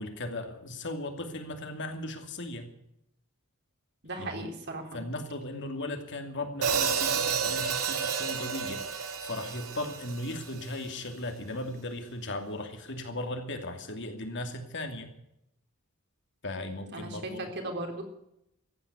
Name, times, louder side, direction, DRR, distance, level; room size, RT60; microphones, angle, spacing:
voice 1, 0.0-2.7 4.2-4.5 4.9-15.1 16.4-17.5, left 1 dB, 55° left, 5 dB, 2.7 m, -37 dB
voice 2, 4.0-5.0 16.9-18.0, right 2 dB, 50° right, 3 dB, 3.7 m, -37 dB
Hi-hat, 6.6-10.8, right 6 dB, 80° right, 2.4 m, -31 dB
15.0 x 9.7 x 9.6 m, 0.78 s
head